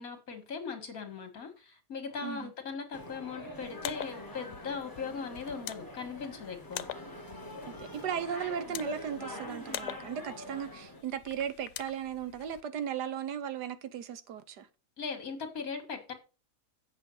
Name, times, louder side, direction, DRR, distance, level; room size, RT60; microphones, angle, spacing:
voice 1, 0.0-6.9 15.0-16.1, left 5 dB, 60° left, 2.2 m, -39 dB
voice 2, 2.2-2.5 7.7-14.7, right 8 dB, 90° right, 1.5 m, -36 dB
sound 1, 2.9-11.0, left 1 dB, 15° left, 1.7 m, -44 dB
sound 2, 3.6-12.6, left 12 dB, 90° left, 1.2 m, -45 dB
8.2 x 6.2 x 5.4 m
omnidirectional pair, 1.7 m